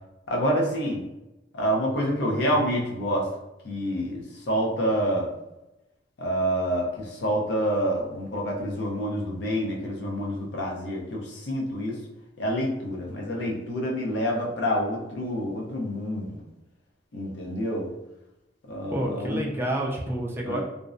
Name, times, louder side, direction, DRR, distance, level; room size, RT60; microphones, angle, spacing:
voice 1, 0.3-1.0 1.5-3.3 3.6-5.3 6.2-12.0 12.4-16.4 17.1-17.9 18.7-19.4 20.4-20.6, equal, 75° left, -1 dB, 0.6 m, -27 dB
voice 2, 18.9-20.6, right 1 dB, 15° right, -2 dB, 0.4 m, -29 dB
2.5 x 2.0 x 2.4 m, 0.94 s
head